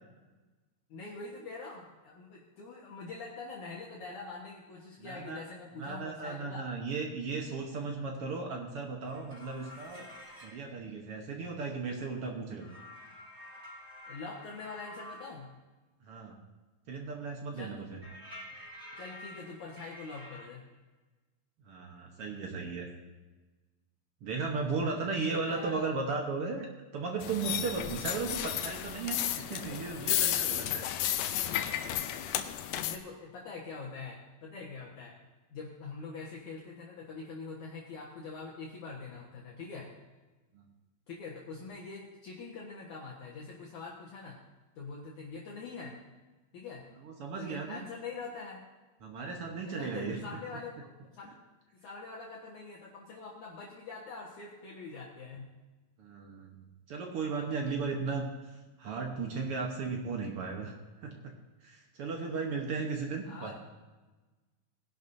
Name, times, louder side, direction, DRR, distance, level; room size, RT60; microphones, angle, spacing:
voice 1, 0.9-6.6 14.1-15.5 17.5-17.9 19.0-20.6 25.3-25.8 32.8-35.2 35.5-39.9 41.1-44.4 44.8-46.0 46.5-46.9 47.3-48.6 49.7-50.7 51.0-51.4 51.7-55.5 63.2-63.6, left 4 dB, 60° left, -4 dB, 2.6 m, -44 dB
voice 2, 5.0-5.4 5.8-10.1 10.4-12.7 16.0-16.4 16.9-18.0 18.5-18.6 21.7-22.9 24.2-26.7 26.9-30.9 40.5-40.6 47.0-47.9 49.0-50.2 56.0-58.2 58.5-60.7 61.0-61.3 61.6-63.6, right 4 dB, 70° right, 1 dB, 1.3 m, -36 dB
sound 1, 9.0-10.6 12.6-15.4 18.0-20.5, left 1 dB, 15° right, 4.8 m, -49 dB
sound 2, 27.2-33.0, left 11 dB, 80° left, 2.1 m, -33 dB
19.5 x 11.0 x 2.7 m, 1.2 s
omnidirectional pair, 4.2 m